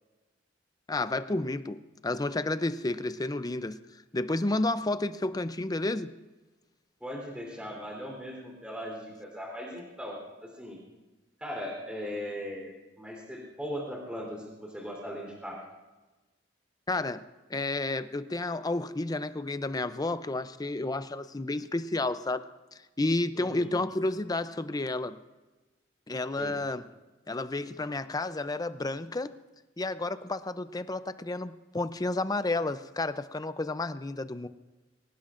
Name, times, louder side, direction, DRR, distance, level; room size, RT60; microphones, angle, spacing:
voice 1, 0.9-3.8 4.1-6.1 16.9-17.2 17.5-22.5 23.0-25.2 26.1-26.9 27.3-29.3 29.8-34.5, left 2 dB, 20° left, 12 dB, 0.5 m, -31 dB
voice 2, 7.0-10.8 11.4-15.6 23.4-23.7 26.4-26.6, equal, 5° right, -1 dB, 3.6 m, -39 dB
23.0 x 18.5 x 2.5 m, 1.2 s
head